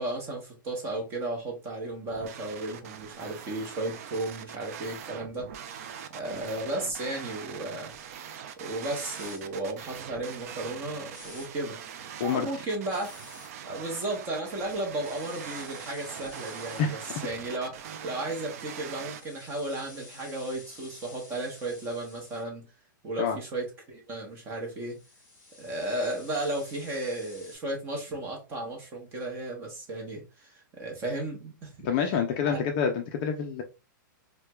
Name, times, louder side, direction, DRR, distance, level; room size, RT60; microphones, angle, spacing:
voice 1, 0.0-5.5 6.1-7.9 8.6-11.8 12.2-13.1 13.6-22.7 23.0-25.0 25.6-31.9 32.5-32.6, right 1 dB, 20° right, 0.9 m, -34 dB
sound 1, 2.0-19.2, right 8 dB, 45° right, 0.4 m, -42 dB
sound 2, 9.1-9.4 11.1-11.5 12.9-13.5 15.0-16.8 18.9-22.4 24.5-27.6, left 2 dB, 15° left, 1.3 m, -51 dB
voice 2, 31.8-33.6, left 6 dB, 30° left, 0.4 m, -27 dB
4.4 x 2.1 x 2.2 m
hypercardioid pair, 165°, 11 cm